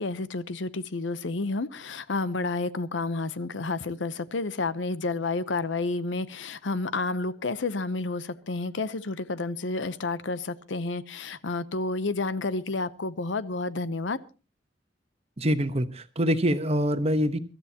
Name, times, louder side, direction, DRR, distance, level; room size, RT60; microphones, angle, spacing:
voice 1, 0.0-14.2, left 3 dB, 85° left, 0.8 m, -30 dB
voice 2, 15.4-17.4, equal, 35° right, 1.1 m, -25 dB
24.5 x 13.0 x 2.9 m
head